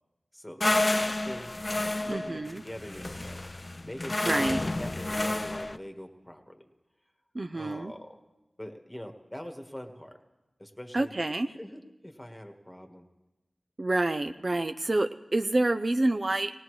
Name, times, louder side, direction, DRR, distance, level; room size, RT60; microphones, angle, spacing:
voice 1, 0.3-0.7 0.9-1.5 1.8-3.4 3.8-6.7 7.5-8.2 8.6-10.2 10.6-11.2 11.5-13.1, equal, 10° left, 5 dB, 1.5 m, -43 dB
sound 1, 0.6-5.8, left 2 dB, 35° left, 0.4 m, -30 dB
voice 2, 2.1-2.6 4.2-4.6 7.3-7.9 10.9-11.5 13.8-16.5, right 2 dB, 50° right, 8 dB, 0.5 m, -28 dB
18.5 x 18.5 x 3.2 m, 1.1 s
cardioid pair, 45°, 0 cm